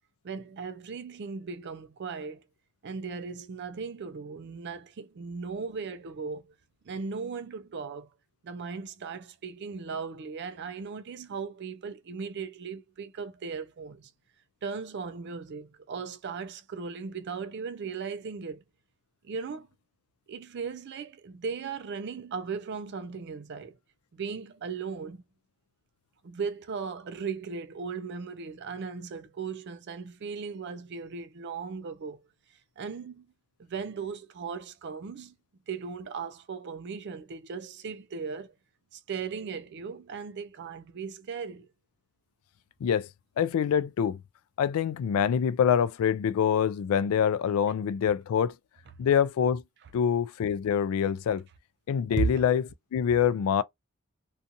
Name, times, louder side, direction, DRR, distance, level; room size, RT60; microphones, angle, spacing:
voice 1, 0.2-2.4 2.8-6.4 6.9-8.1 8.4-14.1 14.6-18.6 19.2-19.7 20.3-23.8 24.1-25.2 26.2-32.2 32.8-33.2 33.6-35.3 35.7-38.5 38.9-41.7 52.2-52.3, right 5 dB, 55° right, 0.4 m, -37 dB
voice 2, 43.4-44.2 44.6-48.5 49.0-49.6 49.9-51.4 51.9-53.6, left 8 dB, 85° left, 0.3 m, -25 dB
2.6 x 2.3 x 2.7 m
head